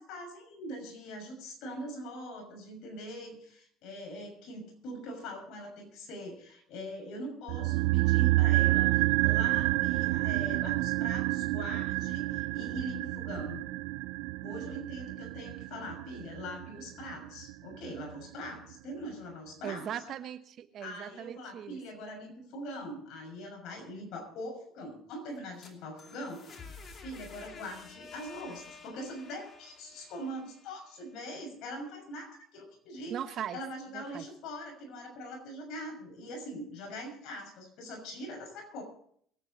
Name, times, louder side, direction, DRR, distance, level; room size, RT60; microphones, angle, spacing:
voice 1, 0.0-13.6 14.4-19.9 20.8-26.7 27.0-33.2 33.5-38.8, equal, 65° left, 2 dB, 6.3 m, -42 dB
sound 1, 7.5-17.7 18.0-18.1, right 20 dB, 80° right, 0.4 m, -29 dB
voice 2, 19.6-21.8 33.1-33.6 33.9-34.2, right 9 dB, 55° right, 10 dB, 1.1 m, -39 dB
sound 2, 25.3-31.2, left 4 dB, 40° left, 2.7 m, -51 dB
23.0 x 9.4 x 4.2 m, 0.64 s
supercardioid pair, 100°, 0 cm